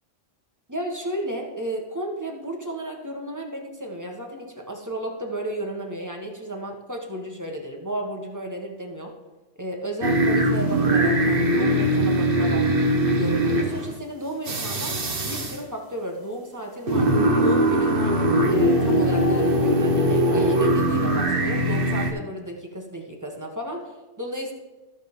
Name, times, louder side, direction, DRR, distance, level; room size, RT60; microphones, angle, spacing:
voice 1, 0.7-9.1 9.6-12.6 13.0-14.9 15.2-17.1 17.4-18.2 18.5-24.5, right 1 dB, 15° right, 0 dB, 1.2 m, -33 dB
sound 1, 10.0-14.0 14.4-15.6 16.9-22.1, right 1 dB, 45° right, 1.3 m, -21 dB
14.5 x 6.2 x 3.7 m, 1.2 s
omnidirectional pair, 1.3 m